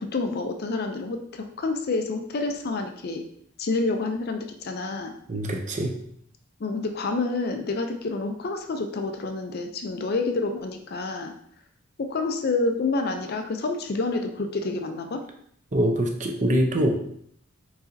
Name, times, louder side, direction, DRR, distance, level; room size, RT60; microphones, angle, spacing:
voice 1, 0.0-3.2 3.6-5.1 6.6-11.3 12.0-15.2, left 3 dB, 45° left, 5 dB, 0.4 m, -28 dB
voice 2, 5.3-5.9 15.7-16.9, right 1 dB, 35° right, 3 dB, 0.6 m, -24 dB
4.8 x 4.0 x 2.6 m, 0.67 s
head